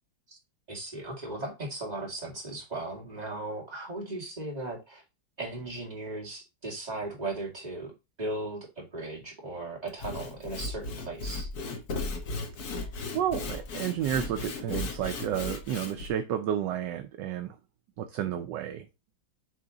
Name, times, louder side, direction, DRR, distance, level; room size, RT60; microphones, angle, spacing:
voice 1, 0.7-5.0 5.4-7.9 8.2-11.5, right 2 dB, 20° right, 2.3 m, -37 dB
Sawing / Wood, 9.9-16.1, left 3 dB, 55° left, 1.4 m, -36 dB
voice 2, 13.1-17.5 18.0-18.9, right 10 dB, 70° right, 1.1 m, -31 dB
7.6 x 3.5 x 3.9 m
omnidirectional pair, 2.2 m